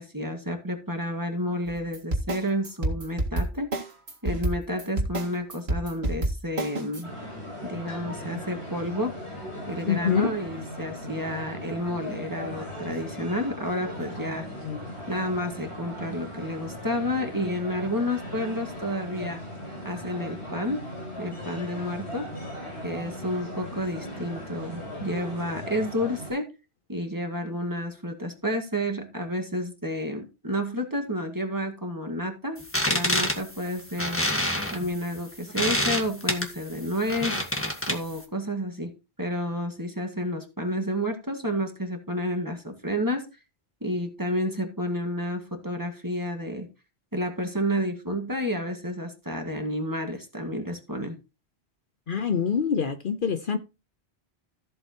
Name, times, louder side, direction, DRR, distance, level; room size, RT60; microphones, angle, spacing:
voice 1, 0.0-3.7 4.2-7.1 7.6-9.1 9.7-14.5 15.1-19.4 19.8-20.9 21.2-22.3 22.8-26.5 26.9-32.6 32.9-34.2 34.7-37.4 37.9-38.9 39.2-43.3 43.8-46.7 47.1-51.2, equal, 20° right, 2.0 m, -30 dB
sound 1, 1.7-7.0, right 1 dB, 70° right, 2.1 m, -28 dB
sound 2, 7.0-26.3, equal, 85° left, 5.3 m, -38 dB
voice 2, 9.8-10.3 14.6-14.8 52.1-53.6, left 6 dB, 55° left, 0.9 m, -25 dB
sound 3, 32.6-38.2, left 1 dB, 10° left, 1.6 m, -28 dB
14.0 x 7.8 x 3.0 m
omnidirectional pair, 1.1 m